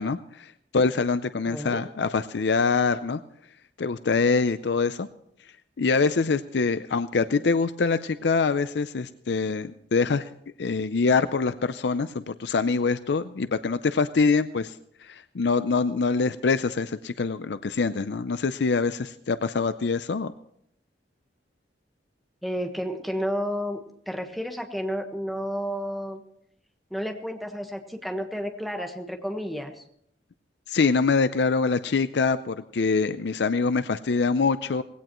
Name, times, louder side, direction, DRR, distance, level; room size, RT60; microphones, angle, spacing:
voice 1, 0.0-3.2 3.8-5.1 5.8-10.3 10.6-14.7 15.0-20.3 30.7-34.8, left 4 dB, 70° left, 12 dB, 0.5 m, -24 dB
voice 2, 1.4-1.8 22.4-23.8 24.1-26.2 26.9-29.8, equal, ahead, 4 dB, 1.4 m, -31 dB
19.0 x 16.5 x 3.1 m, 0.70 s
head